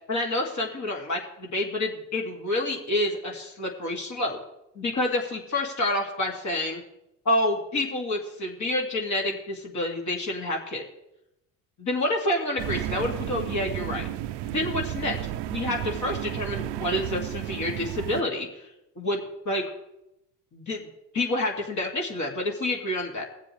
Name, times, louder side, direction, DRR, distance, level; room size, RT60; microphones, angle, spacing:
voice 1, 0.1-4.4 4.8-6.8 7.2-10.8 11.8-14.1 14.4-15.2 15.4-18.7 19.0-19.2 19.5-19.6 20.5-20.9 21.1-23.2, left 1 dB, 40° left, 0 dB, 2.5 m, -28 dB
sound 1, 12.6-18.2, right 13 dB, 60° right, 0.7 m, -33 dB
19.5 x 7.4 x 3.4 m, 0.86 s
supercardioid pair, 80°, 46 cm